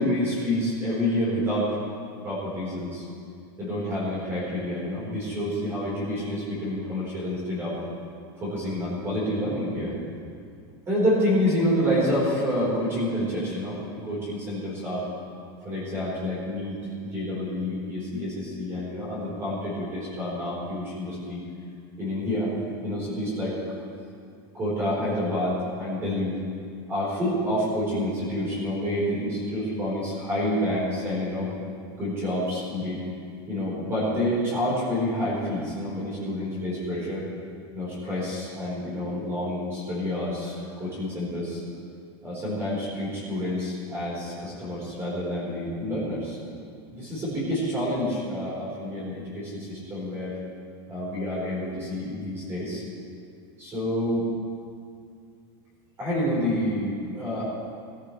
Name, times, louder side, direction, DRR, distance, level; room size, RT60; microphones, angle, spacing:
voice 1, 0.0-1.8 2.2-3.0 3.6-7.8 8.4-9.9 10.9-15.1 15.6-21.4 22.0-22.5 22.8-23.6 24.5-26.4 26.9-31.5 32.0-33.0 33.5-37.3 37.7-41.6 42.2-46.4 46.9-50.4 50.9-52.8 53.6-54.3 56.0-57.5, left 1 dB, 20° right, -7 dB, 4.4 m, -28 dB
19.5 x 13.5 x 3.3 m, 2.3 s
supercardioid pair, 170°, 14 cm